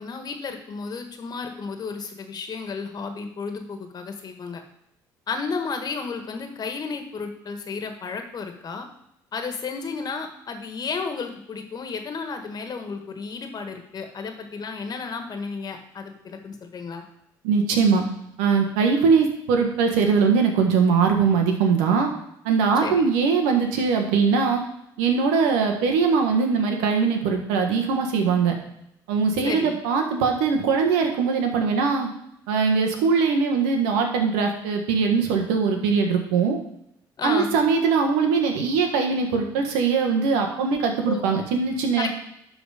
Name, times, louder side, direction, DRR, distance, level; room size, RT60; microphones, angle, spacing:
voice 1, 0.0-4.6 5.3-8.9 9.3-17.0 22.8-23.1 29.4-29.8 37.2-37.5 41.0-41.2 42.0-42.1, left 4 dB, 45° left, 5 dB, 1.6 m, -32 dB
voice 2, 17.4-18.0 18.4-22.1 22.4-24.6 25.0-28.5 29.1-32.1 32.5-36.6 37.2-42.1, right 5 dB, 85° right, 3 dB, 1.5 m, -21 dB
12.0 x 4.1 x 5.0 m, 0.77 s
supercardioid pair, 70°, 9 cm